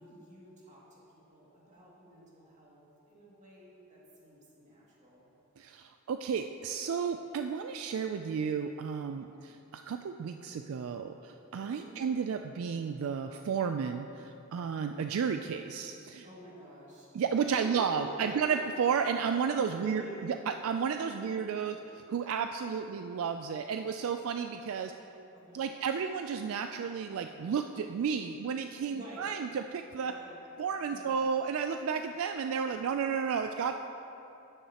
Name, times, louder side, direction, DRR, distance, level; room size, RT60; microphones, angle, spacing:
voice 1, 0.0-5.3 11.8-12.1 16.2-17.1 17.5-18.6 19.7-20.3 21.2-21.4 21.6-21.7 25.3-26.0 28.8-29.4 30.0-30.4 30.9-31.2, equal, 35° right, -6 dB, 2.3 m, -49 dB
voice 2, 5.6-16.3 17.1-21.7 22.1-24.9 25.5-30.1 30.6-33.7, right 6 dB, 70° right, 6 dB, 0.3 m, -32 dB
13.0 x 10.0 x 2.9 m, 2.9 s
head